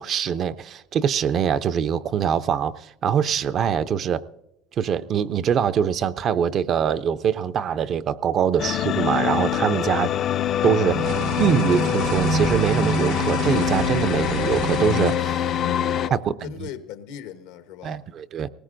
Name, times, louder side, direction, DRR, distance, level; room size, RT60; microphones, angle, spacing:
voice 1, 0.0-4.2 4.8-10.1 10.6-15.4 16.1-16.7 17.8-18.5, right 8 dB, 40° right, 0.4 m, -23 dB
sound 1, 8.6-16.1, left 11 dB, 45° left, 0.4 m, -24 dB
sound 2, 10.9-15.8, right 4 dB, 75° right, 1.2 m, -28 dB
voice 2, 15.9-18.0, left 10 dB, 80° left, 1.0 m, -39 dB
20.0 x 18.5 x 2.5 m
supercardioid pair, 120°, 0 cm